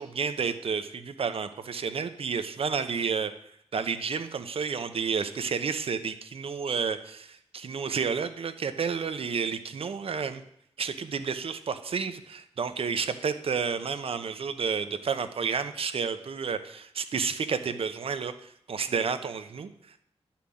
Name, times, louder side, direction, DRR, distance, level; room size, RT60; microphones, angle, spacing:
voice 1, 0.0-3.3 3.7-10.4 10.8-20.0, right 6 dB, 65° right, 10 dB, 1.0 m, -31 dB
10.5 x 6.0 x 8.5 m, 0.72 s
wide cardioid pair, 120°, 10 cm